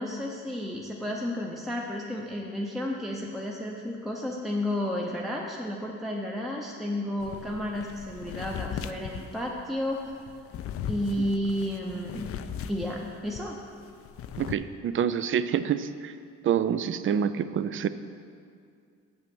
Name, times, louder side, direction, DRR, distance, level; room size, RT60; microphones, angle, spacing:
voice 1, 0.0-10.2 10.8-12.3 12.6-13.6, left 1 dB, ahead, -2 dB, 0.7 m, -32 dB
sound 1, 7.2-13.5 13.8-14.5, left 8 dB, 50° left, 0.4 m, -38 dB
voice 2, 14.4-16.1 16.4-17.9, right 8 dB, 45° right, 13 dB, 0.4 m, -27 dB
7.0 x 6.2 x 6.0 m, 2.3 s
cardioid pair, 90°, 30 cm